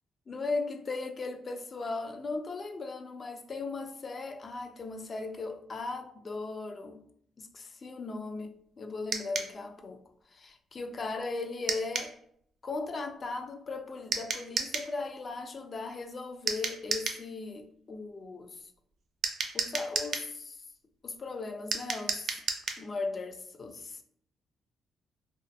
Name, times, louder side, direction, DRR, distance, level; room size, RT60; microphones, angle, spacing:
voice 1, 0.3-7.0 7.4-10.0 10.3-12.1 12.6-18.6 19.5-20.6 21.0-22.4 22.8-24.0, left 3 dB, 40° left, 0.3 m, -37 dB
sound 1, 9.1-9.5 11.7-12.1 14.1-14.9 16.5-17.2 19.2-20.3 21.7-22.8, right 5 dB, 60° right, 0.4 m, -32 dB
2.5 x 2.3 x 2.5 m
cardioid pair, 90°, 0 cm